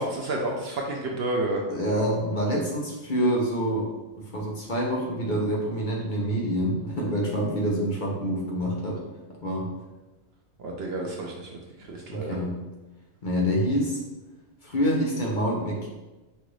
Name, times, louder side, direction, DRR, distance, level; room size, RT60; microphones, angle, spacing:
voice 1, 0.0-1.6 10.6-12.4, right 2 dB, 60° right, -1 dB, 0.7 m, -30 dB
voice 2, 1.7-3.9 4.3-9.0 9.3-9.7 12.1-12.5 13.2-14.0 14.6-15.9, equal, 45° left, -3 dB, 0.8 m, -26 dB
5.3 x 2.5 x 3.1 m, 1.1 s
omnidirectional pair, 1.3 m